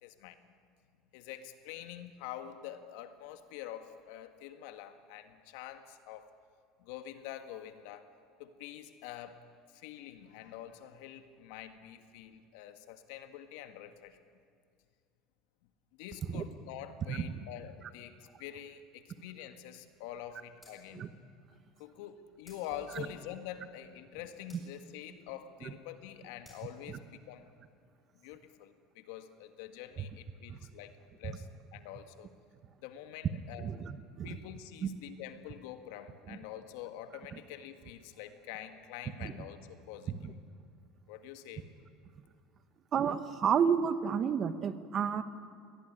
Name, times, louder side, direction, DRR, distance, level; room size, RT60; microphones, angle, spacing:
voice 1, 0.0-0.5 1.1-6.3 6.8-8.1 8.4-9.4 9.7-14.2 16.0-21.1 21.8-27.5 28.2-32.3 32.8-33.7 34.2-40.4 41.1-41.7, left 11 dB, 75° left, 9 dB, 1.8 m, -46 dB
voice 2, 17.1-17.4 20.9-21.1 22.9-23.1 25.6-25.7 26.9-27.0 30.0-30.1 30.5-30.6 33.6-34.4 34.8-34.9 36.3-36.4 37.3-37.4 39.2-39.3 40.1-40.3 42.9-45.2, right 7 dB, 35° right, 12 dB, 1.1 m, -31 dB
sound 1, 20.6-20.8 22.5-23.3 24.5-24.9 26.4-26.8, left 1 dB, 5° left, 7.0 m, -58 dB
21.5 x 18.0 x 9.9 m, 2.3 s
supercardioid pair, 135°, 0 cm